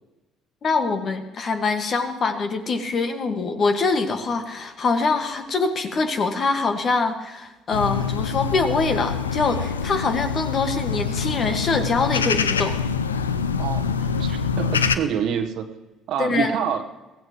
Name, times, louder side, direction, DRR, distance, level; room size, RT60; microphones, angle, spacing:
voice 1, 0.6-12.8 16.2-16.6, left 4 dB, 40° left, 7 dB, 1.7 m, -24 dB
sound 1, 7.7-15.0, left 6 dB, 80° left, 0.5 m, -25 dB
voice 2, 13.6-15.7 16.1-16.8, right 8 dB, 55° right, 7 dB, 1.2 m, -27 dB
23.0 x 16.0 x 3.1 m, 1.1 s
figure-of-eight pair, 50°, 0 cm